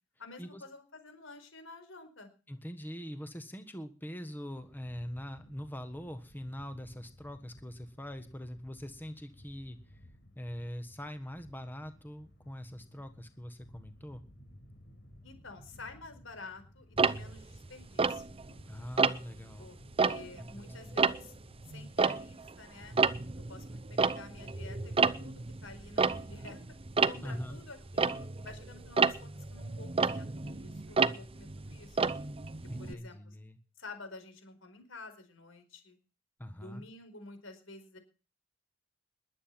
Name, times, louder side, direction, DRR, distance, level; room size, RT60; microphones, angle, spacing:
voice 1, 0.2-2.3 15.2-18.4 19.6-21.3 21.7-23.0 23.5-26.6 27.1-32.0 32.8-33.4 33.8-36.0 36.6-38.0, left 3 dB, 85° left, 8 dB, 4.8 m, -50 dB
voice 2, 2.5-10.0 10.3-14.2 18.7-19.7 20.4-21.0 27.2-27.6 30.9-31.3 32.7-33.6 36.4-36.8, equal, 10° left, 9 dB, 1.4 m, -43 dB
sound 1, 4.5-21.8, equal, 60° left, 4.7 m, -57 dB
Tick-tock, 17.0-18.6 19.0-19.4 19.8-22.6 22.8-32.9, right 4 dB, 30° right, 0.7 m, -30 dB
21.0 x 9.1 x 5.8 m, 0.37 s
head